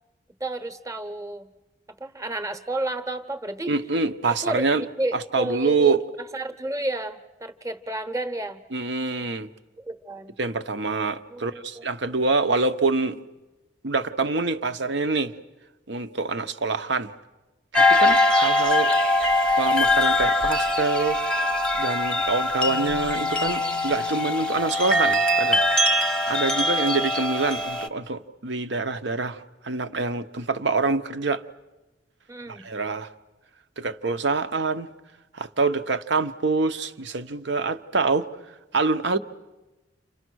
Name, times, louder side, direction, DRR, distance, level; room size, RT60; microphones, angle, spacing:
voice 1, 0.4-1.5 2.0-3.7 4.3-4.6 5.0-6.0 6.3-8.6 9.8-10.4 11.3-11.8 32.3-32.7, right 1 dB, 15° right, 1.1 m, -31 dB
voice 2, 3.7-4.8 5.1-6.0 8.7-9.5 10.4-13.2 13.8-15.3 15.9-17.1 17.7-18.9 19.6-21.2 21.8-26.0 26.3-31.4 32.5-33.1 33.8-34.9 35.3-38.3 38.7-39.2, right 3 dB, 70° right, 0.9 m, -25 dB
sound 1, 17.7-27.9, left 1 dB, 5° left, 0.9 m, -22 dB
sound 2, 22.7-27.0, left 6 dB, 40° right, 1.0 m, -46 dB
30.0 x 27.5 x 6.3 m
head